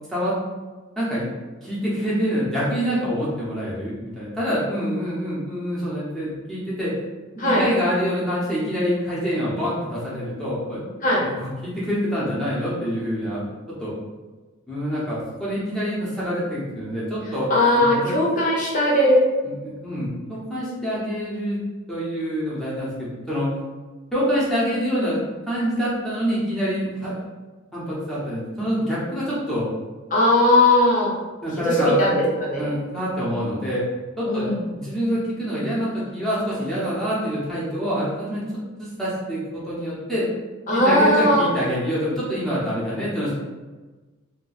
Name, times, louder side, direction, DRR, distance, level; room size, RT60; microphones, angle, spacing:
voice 1, 1.0-1.3 1.6-6.9 7.3-10.8 11.2-13.4 13.8-13.9 14.7-17.5 17.7-18.1 19.4-21.6 21.9-23.5 24.1-27.2 27.7-29.7 31.4-33.8 34.2-38.4 38.8-40.3 40.7-43.3, equal, ahead, -9 dB, 0.8 m, -26 dB
voice 2, 17.5-19.2 30.1-31.1 31.6-32.8 34.2-34.6 40.7-41.5, left 1 dB, 35° left, -4 dB, 0.8 m, -18 dB
2.6 x 2.2 x 4.0 m, 1.3 s
head